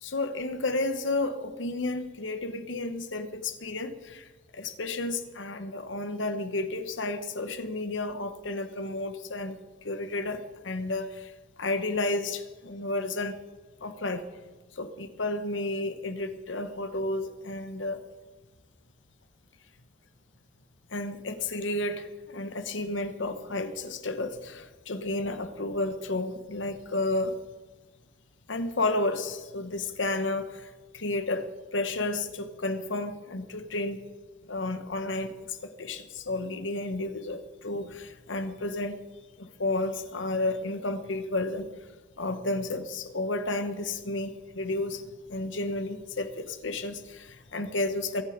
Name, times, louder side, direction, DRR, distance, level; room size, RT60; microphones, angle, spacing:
voice 1, 0.0-4.3 4.5-11.3 11.6-13.4 13.8-14.2 14.7-18.0 20.9-27.4 28.5-34.0 34.5-39.0 39.4-41.7 42.2-45.0 45.3-48.2, left 2 dB, 90° left, 9 dB, 1.2 m, -32 dB
23.5 x 7.9 x 5.2 m, 1.3 s
head